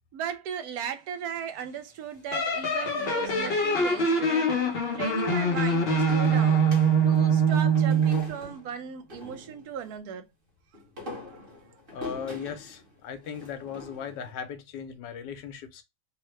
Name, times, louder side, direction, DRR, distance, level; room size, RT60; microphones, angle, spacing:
voice 1, 0.1-6.6 7.0-10.3, right 8 dB, 65° right, 1.1 m, -37 dB
sound 1, 2.1-4.1 6.1-9.9 10.7-14.3, left 1 dB, 35° right, 1.2 m, -44 dB
sound 2, 2.3-8.3, right 3 dB, 50° left, 0.7 m, -23 dB
voice 2, 11.9-15.8, left 7 dB, 80° left, 1.3 m, -38 dB
3.7 x 2.1 x 3.0 m
omnidirectional pair, 1.9 m